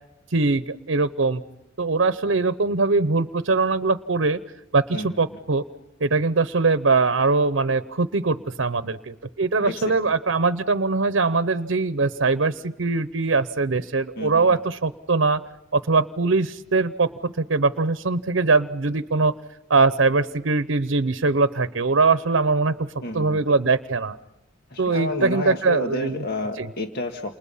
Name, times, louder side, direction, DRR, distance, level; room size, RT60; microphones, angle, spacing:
voice 1, 0.3-1.4 1.8-4.4 4.7-5.6 6.0-15.4 15.7-19.3 19.7-22.7 23.1-24.2 24.8-26.2 26.6-26.7, right 3 dB, 85° right, 12 dB, 0.8 m, -22 dB
voice 2, 4.9-5.2 9.6-9.9 14.2-14.6 23.0-23.4 24.7-27.4, left 2 dB, 55° left, 3 dB, 1.8 m, -30 dB
29.0 x 29.0 x 5.6 m, 0.93 s
head